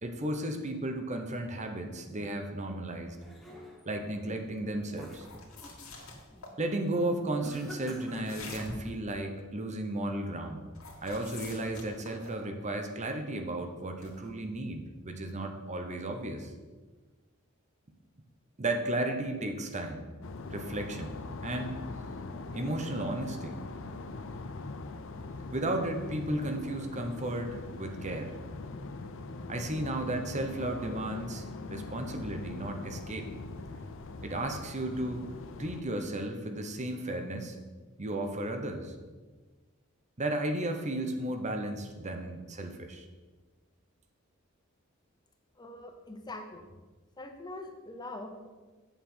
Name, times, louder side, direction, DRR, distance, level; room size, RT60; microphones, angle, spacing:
voice 1, 0.0-3.2 3.9-5.3 6.6-10.7 11.0-16.5 18.6-20.1 20.5-21.8 22.5-23.6 25.5-28.3 29.5-33.3 34.2-35.2 35.6-37.6 38.0-38.9 40.2-43.1, right 1 dB, 35° right, 5 dB, 0.9 m, -34 dB
sound 1, 2.9-4.0 4.5-5.8 6.2-6.5 7.4-8.8, equal, ahead, 1.4 m, -48 dB
sound 2, 5.1-6.5 8.1-9.0 10.7-12.4 14.0-14.3, left 2 dB, 85° left, 2.0 m, -45 dB
sound 3, 20.2-35.8, left 3 dB, 65° left, 0.7 m, -42 dB
voice 2, 45.6-46.8 47.2-48.5, left 2 dB, 20° left, 5 dB, 0.8 m, -43 dB
8.4 x 7.3 x 5.6 m, 1.3 s
head